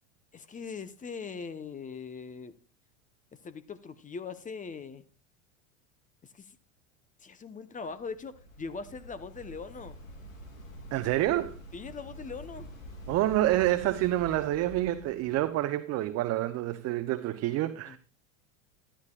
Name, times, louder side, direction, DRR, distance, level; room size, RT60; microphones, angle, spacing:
voice 1, 0.3-2.5 3.3-5.1 6.2-6.6 7.2-10.0 11.7-12.7 17.9-18.0, left 5 dB, 20° left, 0.8 m, -41 dB
Waves surf, 7.8-15.5, right 1 dB, 90° left, 3.2 m, -47 dB
voice 2, 10.9-11.6 13.1-18.0, right 15 dB, 40° right, 0.7 m, -28 dB
13.5 x 11.5 x 2.4 m
hypercardioid pair, 100°, 39 cm